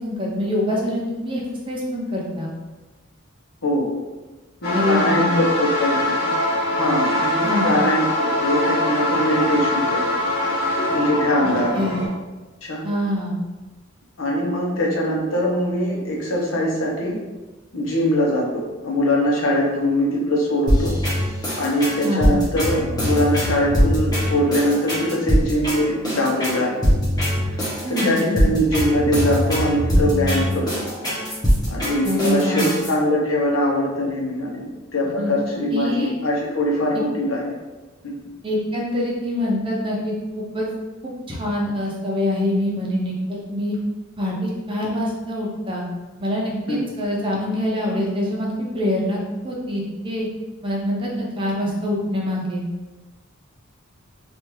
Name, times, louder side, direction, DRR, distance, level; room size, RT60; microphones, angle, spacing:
voice 1, 0.0-1.4 1.7-2.5 4.7-5.4 7.4-7.7 11.7-12.0 12.8-13.4 22.0-22.3 27.8-28.5 32.0-32.7 35.2-35.3 35.7-36.1 38.4-40.7 41.3-43.8 44.2-45.8 46.2-48.5 48.7-49.2 49.4-50.3 50.6-52.6, left 1 dB, 25° right, -3 dB, 0.6 m, -24 dB
voice 2, 4.6-6.3 6.7-10.0 10.9-11.8 12.6-12.8 14.2-17.2 17.7-20.9 21.6-26.8 27.9-30.7 31.7-37.4 38.0-38.2 46.7-46.8, left 1 dB, 85° left, -2 dB, 0.8 m, -22 dB
sound 1, 4.6-12.1, left 1 dB, 55° left, 1.5 m, -23 dB
sound 2, 20.7-32.9, equal, 20° left, 0.9 m, -22 dB
3.3 x 2.5 x 3.1 m, 1.2 s
head